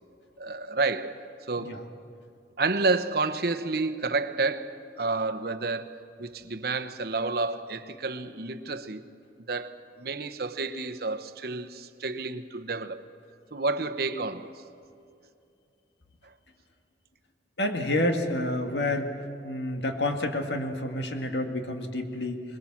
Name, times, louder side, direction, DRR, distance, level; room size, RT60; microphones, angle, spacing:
voice 1, 0.4-1.2 1.5-1.7 2.6-9.0 9.5-13.0 13.5-14.5, right 3 dB, 60° right, 10 dB, 1.0 m, -30 dB
voice 2, 17.6-19.1 19.4-22.4, left 1 dB, 80° left, 4 dB, 1.9 m, -29 dB
22.0 x 21.5 x 7.3 m, 2.6 s
head